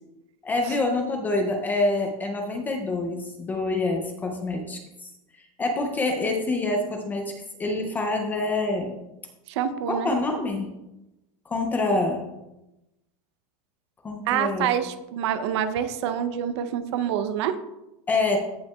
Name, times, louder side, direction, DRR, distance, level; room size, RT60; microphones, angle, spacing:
voice 1, 0.4-5.1 5.4-7.3 7.6-8.9 9.9-10.7 11.5-12.3 14.0-14.7 18.1-18.4, left 2 dB, 10° left, 3 dB, 0.3 m, -26 dB
voice 2, 9.5-10.1 14.3-17.6, right 9 dB, 45° right, 12 dB, 0.6 m, -26 dB
15.5 x 5.6 x 2.2 m, 0.94 s
supercardioid pair, 180°, 20 cm